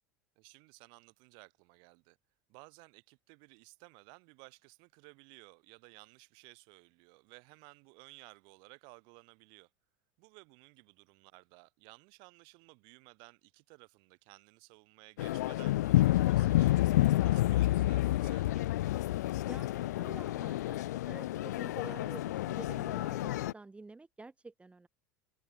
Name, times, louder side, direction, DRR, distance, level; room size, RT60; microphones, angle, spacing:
voice 1, 0.4-2.2 2.5-9.7 10.2-16.8 17.2-18.6, right 33 dB, 55° right, 6.5 m, -57 dB
sound 1, 15.2-23.5, left 15 dB, 65° left, 0.6 m, -29 dB
voice 2, 19.5-20.8 21.1-24.9, right 3 dB, 10° right, 5.9 m, -49 dB
figure-of-eight pair, 75°, 10 cm